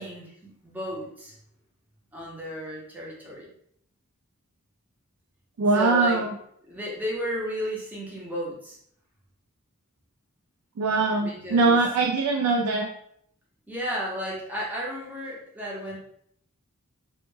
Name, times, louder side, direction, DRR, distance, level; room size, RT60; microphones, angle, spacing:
voice 1, 0.0-1.3 2.1-3.5 5.7-6.2 6.7-8.8 11.2-11.8 13.7-16.0, equal, 5° right, -5 dB, 0.6 m, -33 dB
voice 2, 5.6-6.3 10.8-12.9, right 3 dB, 80° right, 2 dB, 0.3 m, -22 dB
2.1 x 2.1 x 3.1 m, 0.69 s
head